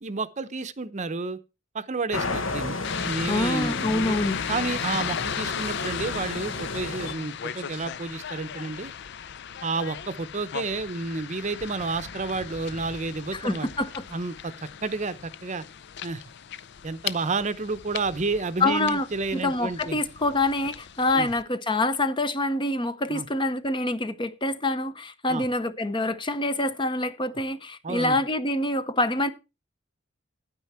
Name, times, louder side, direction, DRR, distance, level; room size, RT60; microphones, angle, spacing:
voice 1, 0.0-1.4 1.7-2.8 3.0-4.2 4.5-8.9 9.6-13.7 14.1-14.5 14.8-15.6 16.0-16.2 16.8-20.0 21.1-21.3 23.1-23.3 25.3-25.4 27.8-28.2, right 3 dB, 40° right, 0.7 m, -30 dB
sound 1, 2.1-7.1, left 3 dB, 75° left, 1.4 m, -32 dB
sound 2, 2.8-21.4, left 9 dB, 60° left, 0.5 m, -37 dB
voice 2, 3.3-4.4 13.3-14.0 18.6-19.1 19.3-29.3, left 2 dB, 25° left, 0.8 m, -26 dB
9.7 x 9.4 x 4.3 m
head